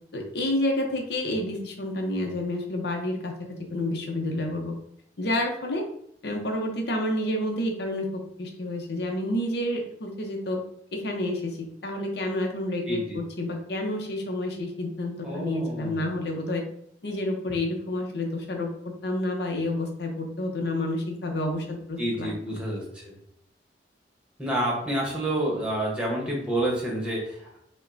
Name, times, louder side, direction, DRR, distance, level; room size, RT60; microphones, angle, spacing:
voice 1, 0.1-4.7 5.2-5.9 6.2-10.6 10.9-16.6 17.0-18.7 19.0-22.6, left 1 dB, 60° left, 2 dB, 0.7 m, -29 dB
voice 2, 12.9-13.2 15.2-16.1 22.0-23.1 24.4-27.6, right 1 dB, 5° right, -3 dB, 1.0 m, -29 dB
5.1 x 2.2 x 2.6 m, 0.71 s
head